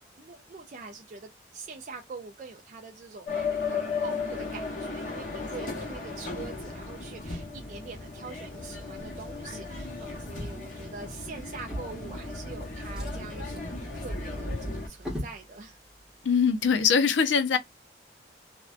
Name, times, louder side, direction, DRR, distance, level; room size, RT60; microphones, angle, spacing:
voice 1, 0.2-13.6 13.9-15.8, right 4 dB, 40° right, 0.3 m, -44 dB
sound 1, 3.3-14.9, left 4 dB, 45° left, 0.8 m, -35 dB
Drawer open or close, 11.5-12.5 12.8-15.4 16.3-16.5 16.8-16.9, equal, 5° right, 0.9 m, -39 dB
voice 2, 16.2-17.6, left 6 dB, 80° left, 0.5 m, -22 dB
2.5 x 2.1 x 2.3 m
head